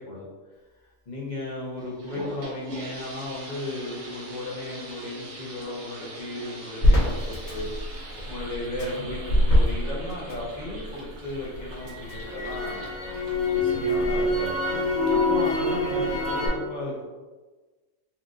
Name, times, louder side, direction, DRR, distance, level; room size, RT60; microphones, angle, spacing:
voice 1, 1.1-7.7 8.3-12.9 13.5-14.5 15.0-17.0, left 1 dB, 40° left, -5 dB, 0.8 m, -35 dB
sound 1, 1.8-14.3, right 1 dB, 65° right, 0.9 m, -42 dB
Crackle, 6.8-10.9 11.3-16.5, left 1 dB, 60° left, 1.7 m, -24 dB
4.4 x 2.5 x 2.4 m, 1.3 s
omnidirectional pair, 1.4 m